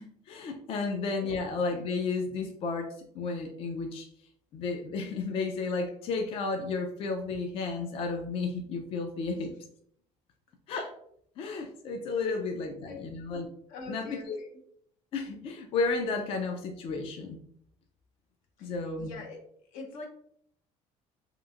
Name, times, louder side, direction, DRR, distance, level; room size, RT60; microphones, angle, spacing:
voice 1, 0.0-2.9 3.1-4.1 4.5-9.5 10.7-10.9 11.4-13.5 13.9-14.4 15.1-17.4 18.6-19.1, left 4 dB, 45° left, 3 dB, 0.4 m, -32 dB
voice 2, 12.6-13.1 13.7-14.5 18.6-18.7 19.0-19.4 19.7-20.1, left 2 dB, 80° left, 2 dB, 0.7 m, -44 dB
2.9 x 2.4 x 2.3 m, 0.68 s
cardioid pair, 135°, 14 cm